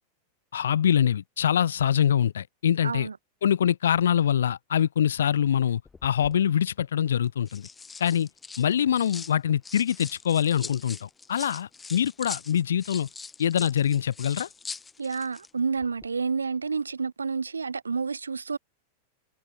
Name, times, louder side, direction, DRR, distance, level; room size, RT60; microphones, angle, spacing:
voice 1, 0.5-3.1 3.4-7.7 8.0-8.3 8.6-13.1 13.4-14.5, left 9 dB, 65° left, 0.8 m, -24 dB
voice 2, 2.8-3.2 15.0-18.6, right 5 dB, 75° right, 4.2 m, -29 dB
sound 1, 5.9-6.4 7.2-9.3 9.6-15.5 15.8-16.1, left 4 dB, 15° left, 2.9 m, -42 dB
figure-of-eight pair, 90°, 0 cm